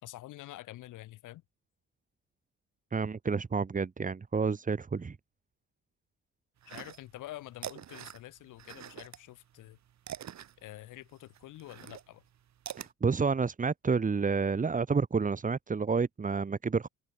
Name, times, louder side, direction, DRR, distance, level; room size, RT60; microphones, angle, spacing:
voice 1, 0.0-1.4 6.7-9.8 10.6-12.2, left 15 dB, 90° left, 4.5 m, -47 dB
voice 2, 2.9-5.2 12.8-16.9, right 5 dB, 25° right, 1.3 m, -29 dB
sound 1, 6.6-7.3 7.5-9.2 9.5-12.9, right 10 dB, 65° right, 3.7 m, -44 dB
cardioid pair, 90°, 30 cm